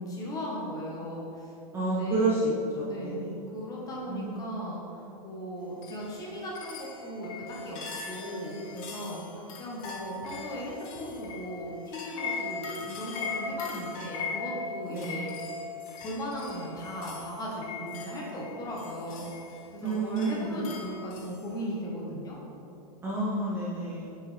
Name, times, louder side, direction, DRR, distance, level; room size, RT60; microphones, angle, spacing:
voice 1, 0.1-1.5 1.8-15.3 16.0-22.4, equal, 20° left, -4 dB, 1.2 m, -37 dB
voice 2, 1.7-3.1 4.1-4.4 14.9-15.1 19.8-20.5 23.0-24.2, right 2 dB, 10° right, -8 dB, 0.8 m, -29 dB
sound 1, 5.8-21.4, left 4 dB, 55° left, 1.0 m, -40 dB
6.3 x 5.2 x 3.3 m, 2.7 s
supercardioid pair, 150°, 20 cm